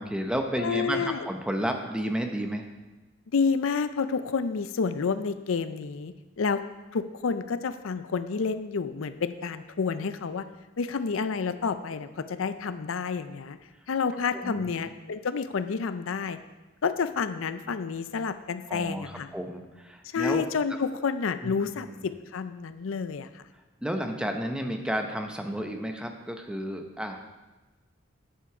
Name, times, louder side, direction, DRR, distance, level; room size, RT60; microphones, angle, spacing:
voice 1, 0.0-2.7 14.3-14.7 18.7-20.4 21.4-22.1 23.8-27.2, equal, 5° right, 4 dB, 0.8 m, -32 dB
voice 2, 0.6-1.3 3.3-6.6 6.9-10.4 10.8-13.6 13.9-16.4 16.8-19.3 20.1-23.4, left 5 dB, 85° left, 12 dB, 0.5 m, -29 dB
10.0 x 7.5 x 4.9 m, 1.2 s
head